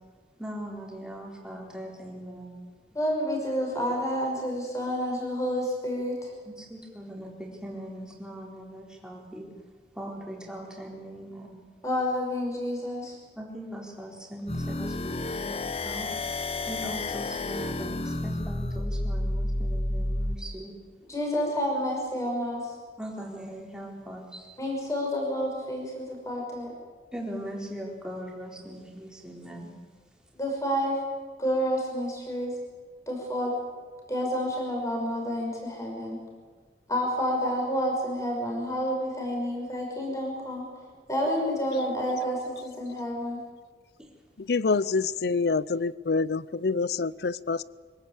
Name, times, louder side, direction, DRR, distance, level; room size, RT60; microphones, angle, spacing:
voice 1, 0.4-2.5 6.5-9.5 10.0-11.6 13.4-15.6 15.8-16.1 16.7-20.7 23.0-24.4 27.1-29.7, equal, 5° right, -1 dB, 4.0 m, -40 dB
voice 2, 2.9-6.3 11.8-13.1 21.0-22.7 24.6-26.7 30.3-31.0 31.4-32.6 33.1-33.5 34.1-36.2 36.9-40.7 41.1-43.4, equal, 20° left, -1 dB, 5.9 m, -29 dB
sound 1, 14.5-20.4, left 2 dB, 35° left, 0.9 m, -30 dB
voice 3, 44.5-47.6, left 4 dB, 70° left, 19 dB, 0.6 m, -26 dB
24.5 x 17.5 x 8.5 m, 1.5 s
head